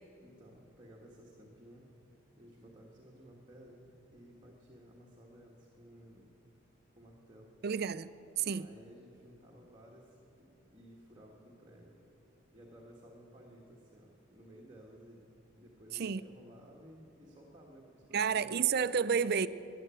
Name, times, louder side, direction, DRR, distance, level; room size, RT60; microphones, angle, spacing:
voice 1, 0.2-6.3 7.0-7.5 8.6-12.0 12.5-15.2 15.5-18.6, equal, 20° right, 1.5 m, -56 dB
voice 2, 7.6-8.1 8.4-8.7 15.9-16.2 18.1-19.5, right 6 dB, 50° right, 0.4 m, -30 dB
14.0 x 10.0 x 9.0 m
head